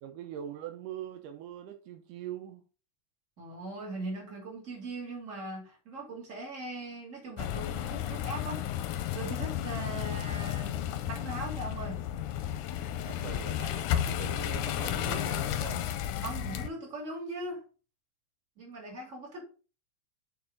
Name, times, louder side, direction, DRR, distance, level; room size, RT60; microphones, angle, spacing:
voice 1, 0.0-2.7 12.9-16.1, right 10 dB, 80° right, 2.2 m, -42 dB
voice 2, 3.4-12.0 16.2-17.6 18.6-19.5, right 2 dB, 25° right, 2.7 m, -40 dB
sound 1, 7.4-16.7, left 11 dB, 75° left, 2.0 m, -33 dB
7.3 x 4.6 x 3.9 m
omnidirectional pair, 3.8 m